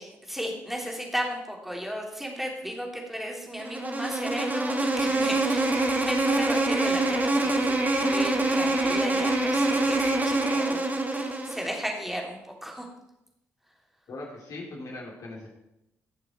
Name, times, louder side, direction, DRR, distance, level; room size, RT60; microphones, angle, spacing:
voice 1, 0.0-10.9 11.1-12.9, equal, 5° right, 0 dB, 3.1 m, -35 dB
Insect, 3.6-11.8, right 2 dB, 20° right, 1.7 m, -25 dB
sound 1, 4.9-10.6, right 3 dB, 65° right, 2.9 m, -37 dB
voice 2, 14.1-15.5, left 2 dB, 50° left, -1 dB, 3.3 m, -39 dB
15.0 x 6.7 x 4.5 m, 0.90 s
figure-of-eight pair, 40°, 7 cm